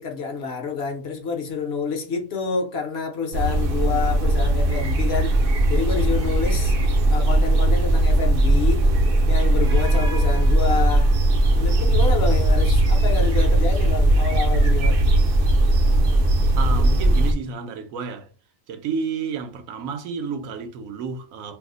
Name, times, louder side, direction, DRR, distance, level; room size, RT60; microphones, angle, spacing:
voice 1, 0.0-5.4 5.7-6.7 7.1-8.8 9.3-11.1 11.5-15.0, left 5 dB, 60° left, 0.8 m, -28 dB
sound 1, 3.3-17.3, right 1 dB, 60° right, 0.6 m, -18 dB
voice 2, 16.5-18.3 18.7-21.6, right 5 dB, 85° right, 1.0 m, -31 dB
2.6 x 2.0 x 3.7 m
omnidirectional pair, 1.4 m